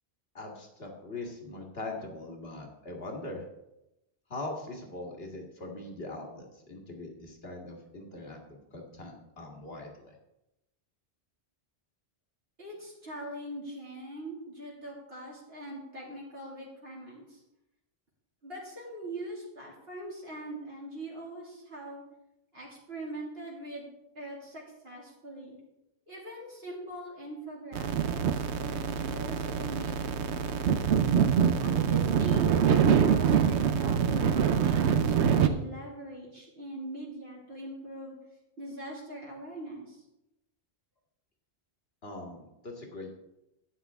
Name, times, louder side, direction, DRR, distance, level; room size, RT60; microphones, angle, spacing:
voice 1, 0.3-3.4 4.3-10.2 42.0-43.1, left 2 dB, 65° left, 1 dB, 2.1 m, -41 dB
voice 2, 12.6-17.4 18.4-22.0 22.5-23.9 24.1-25.6 26.1-30.9 31.6-38.1 38.6-40.0, right 1 dB, 60° right, -5 dB, 2.9 m, -42 dB
sound 1, 27.7-35.5, right 7 dB, 85° right, 1.0 m, -25 dB
11.5 x 9.2 x 3.6 m, 0.90 s
omnidirectional pair, 1.1 m